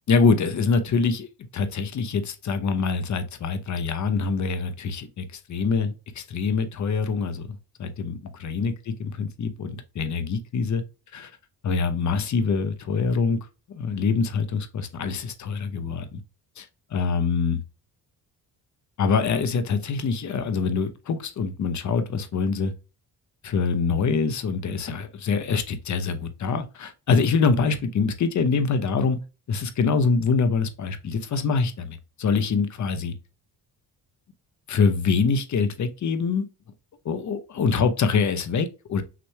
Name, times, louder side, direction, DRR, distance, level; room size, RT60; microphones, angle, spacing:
voice 1, 0.1-1.3 1.5-10.8 11.1-11.3 11.6-13.4 13.7-16.2 16.6-16.7 16.9-17.6 19.0-22.7 23.4-29.2 29.5-33.1 34.7-36.5 37.0-39.0, left 5 dB, 45° left, 0.8 m, -25 dB
5.9 x 3.1 x 2.2 m
cardioid pair, 95°, 39 cm